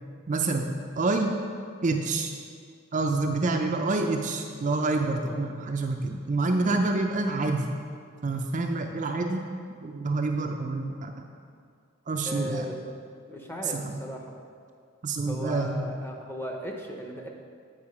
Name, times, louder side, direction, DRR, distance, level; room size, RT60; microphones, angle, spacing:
voice 1, 0.3-0.7 1.0-1.4 1.8-2.3 2.9-7.7 8.2-9.4 9.8-11.1 12.1-12.7 13.6-14.0 15.0-15.9, right 3 dB, 40° right, 3 dB, 0.4 m, -27 dB
voice 2, 12.2-12.7 13.3-14.4 15.3-17.3, equal, 10° left, 0 dB, 0.8 m, -37 dB
8.6 x 4.8 x 4.8 m, 2.2 s
head